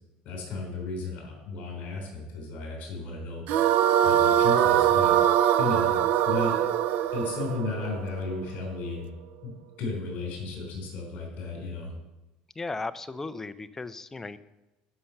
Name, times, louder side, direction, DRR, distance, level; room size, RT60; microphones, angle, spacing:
voice 1, 0.2-3.4 4.0-5.1 5.6-5.9 6.3-6.6 7.1-9.1 9.4-11.9, left 3 dB, 50° left, 0 dB, 4.3 m, -34 dB
sound 1, 3.5-8.7, right 10 dB, 60° right, 0.5 m, -23 dB
voice 2, 12.6-14.4, left 3 dB, 10° left, 12 dB, 0.4 m, -36 dB
11.0 x 5.7 x 6.6 m, 1.0 s
cardioid pair, 150°, 3 cm